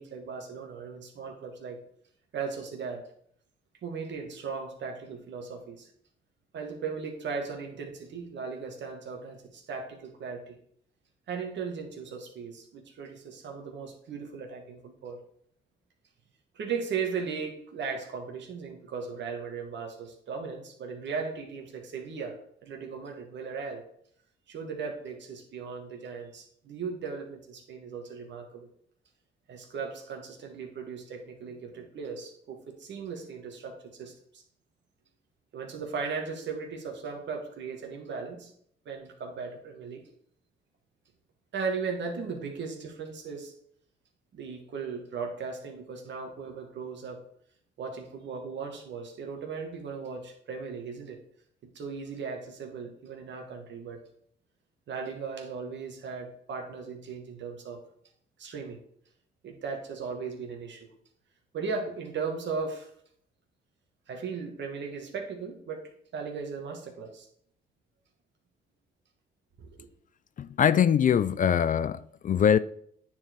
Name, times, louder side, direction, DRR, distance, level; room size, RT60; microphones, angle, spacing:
voice 1, 0.0-1.8 2.3-3.0 3.8-5.9 6.5-10.6 11.3-15.2 16.5-23.8 24.5-28.7 29.5-34.4 35.5-38.5 38.9-40.0 41.5-43.5 44.3-47.2 47.8-51.2 51.8-54.0 54.9-57.8 58.4-58.8 59.4-60.9 61.5-62.9 64.1-65.8 66.1-67.3 69.6-69.8, right 5 dB, 65° right, 2.0 m, -37 dB
voice 2, 70.4-72.6, left 8 dB, 40° left, 0.4 m, -23 dB
9.4 x 4.7 x 4.7 m
cardioid pair, 90°, 20 cm